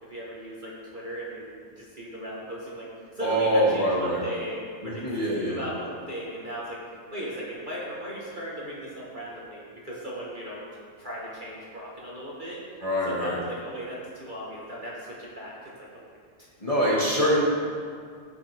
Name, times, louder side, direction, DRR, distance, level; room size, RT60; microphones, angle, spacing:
voice 1, 0.0-6.8 7.1-10.7 11.0-12.6 13.0-15.7, equal, 35° right, -6 dB, 1.4 m, -37 dB
voice 2, 3.2-4.2 4.8-5.6 12.8-13.4 16.6-17.4, equal, 25° left, -6 dB, 1.9 m, -24 dB
15.5 x 6.3 x 3.4 m, 2.2 s
omnidirectional pair, 1.6 m